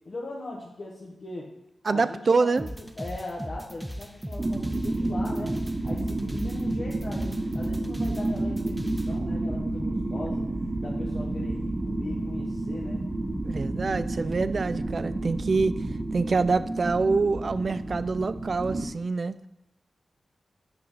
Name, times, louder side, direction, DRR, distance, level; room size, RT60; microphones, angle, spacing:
voice 1, 0.0-1.5 1.9-5.5 5.8-10.4 10.8-13.0, left 2 dB, 60° left, -4 dB, 1.2 m, -39 dB
voice 2, 1.9-2.7 13.4-15.7 16.1-19.4, right 4 dB, 55° right, 14 dB, 0.3 m, -25 dB
sound 1, 2.6-9.1, equal, 10° right, 0.7 m, -37 dB
sound 2, 4.4-18.8, right 2 dB, 40° right, 1.0 m, -30 dB
8.6 x 6.1 x 4.0 m, 0.88 s
cardioid pair, 60°, 0 cm